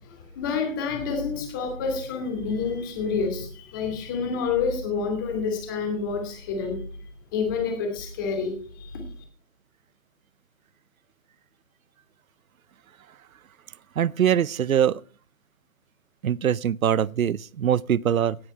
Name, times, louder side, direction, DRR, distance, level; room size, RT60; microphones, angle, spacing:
voice 1, 0.0-6.8 7.3-9.0, left 5 dB, 15° left, 2.6 m, -28 dB
voice 2, 14.0-15.0 16.2-18.4, right 9 dB, 80° right, 0.6 m, -23 dB
18.0 x 8.8 x 4.5 m
hypercardioid pair, 170°, 41 cm